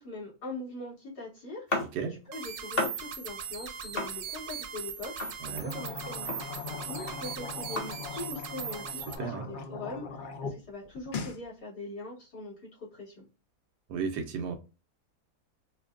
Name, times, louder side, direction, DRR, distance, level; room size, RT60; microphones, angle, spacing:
voice 1, 0.0-1.9 2.3-13.3, left 2 dB, 85° left, 2.9 m, -42 dB
sound 1, 1.7-2.3 2.7-3.3 4.0-4.7 5.2-5.9 6.2-8.2, left 2 dB, 40° left, 1.2 m, -35 dB
sound 2, 2.3-9.2, right 8 dB, 65° right, 0.9 m, -39 dB
sound 3, 5.5-10.5 10.9-11.4, left 5 dB, 65° left, 0.5 m, -40 dB
voice 2, 9.2-9.5 13.9-14.6, right 6 dB, 85° right, 1.3 m, -34 dB
5.2 x 2.3 x 2.4 m
omnidirectional pair, 1.7 m